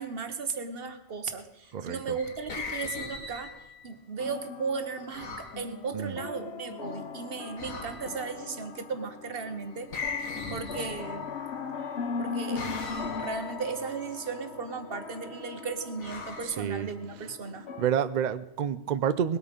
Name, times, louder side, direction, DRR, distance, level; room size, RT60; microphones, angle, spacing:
voice 1, 0.0-3.5 3.8-9.9 10.5-11.3 12.2-12.6 13.2-17.7, right 5 dB, 45° right, 10 dB, 1.2 m, -36 dB
sound 1, 1.9-3.9 5.1-5.6 7.6-8.3 9.9-11.4 12.6-13.6 16.0-17.2, left 4 dB, 75° left, 2.2 m, -39 dB
sound 2, 4.2-17.9, left 5 dB, 55° left, 1.1 m, -39 dB
voice 2, 16.4-16.9 17.8-19.4, right 8 dB, 75° right, 13 dB, 0.4 m, -29 dB
20.0 x 8.6 x 5.2 m, 0.97 s
omnidirectional pair, 1.4 m